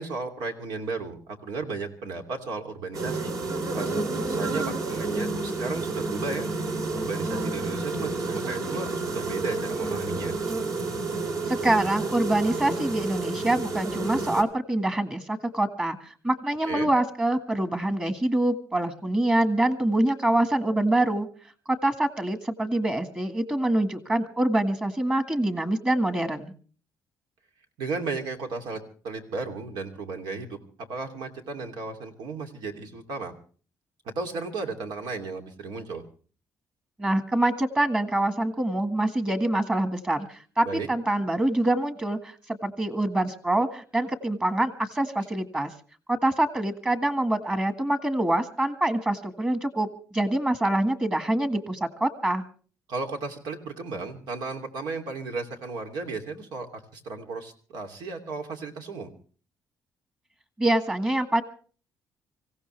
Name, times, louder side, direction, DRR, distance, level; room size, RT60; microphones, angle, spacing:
voice 1, 0.0-3.3 3.7-6.5 6.9-10.3 16.6-16.9 27.8-33.3 34.0-36.0 40.6-40.9 52.9-59.1, right 4 dB, 85° right, 5 dB, 2.9 m, -34 dB
sound 1, 2.9-14.4, right 3 dB, 55° right, 3.1 m, -30 dB
voice 2, 11.5-21.3 21.7-26.5 37.0-45.7 46.1-52.4 60.6-61.4, right 1 dB, 15° right, 9 dB, 1.7 m, -25 dB
25.5 x 16.0 x 3.3 m, 0.41 s
cardioid pair, 125°, 7 cm